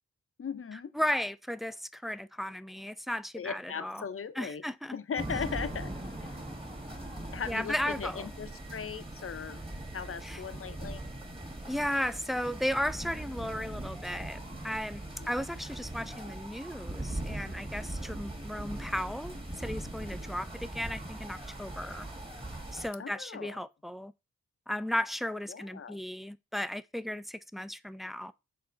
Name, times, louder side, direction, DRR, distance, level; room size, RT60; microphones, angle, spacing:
voice 1, 0.4-0.9 3.3-4.6 4.9-5.9 6.2-6.4 7.3-9.6 9.9-11.0 15.2-15.3 23.0-23.6 25.5-26.0, left 6 dB, 45° left, 0.7 m, -38 dB
voice 2, 0.9-4.0 4.4-5.0 7.5-8.3 10.2-10.4 11.7-14.4 14.6-15.0 15.3-22.1 22.7-24.1 24.7-28.3, left 1 dB, ahead, 0.4 m, -35 dB
sound 1, 5.1-22.9, right 1 dB, 20° right, 1.8 m, -40 dB
6.8 x 4.2 x 3.8 m
wide cardioid pair, 80°, 31 cm